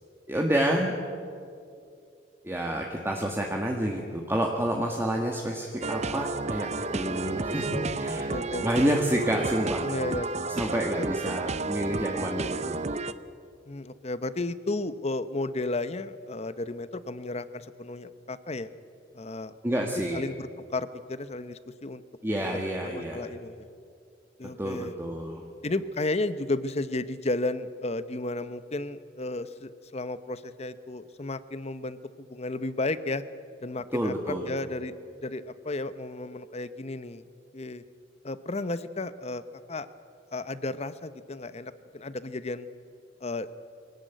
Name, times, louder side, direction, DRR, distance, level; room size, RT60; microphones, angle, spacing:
voice 1, 0.3-1.0 2.4-8.3 8.6-9.9 10.5-12.8 19.6-20.2 22.2-23.2 24.6-25.4 33.9-34.5, right 1 dB, 15° right, 0 dB, 1.6 m, -29 dB
sound 1, 5.8-13.1, right 3 dB, 40° right, 0.7 m, -31 dB
voice 2, 7.7-8.7 9.8-10.5 11.0-11.1 13.7-18.7 19.1-19.5 20.1-22.0 22.4-22.6 22.8-23.6 24.4-24.9 25.6-33.2 33.6-34.9 35.2-37.2 37.5-37.8 38.2-39.4 39.7-39.9 40.3-42.7 43.2-43.5, left 2 dB, 35° left, 14 dB, 0.9 m, -33 dB
24.0 x 17.5 x 9.2 m, 2.4 s
head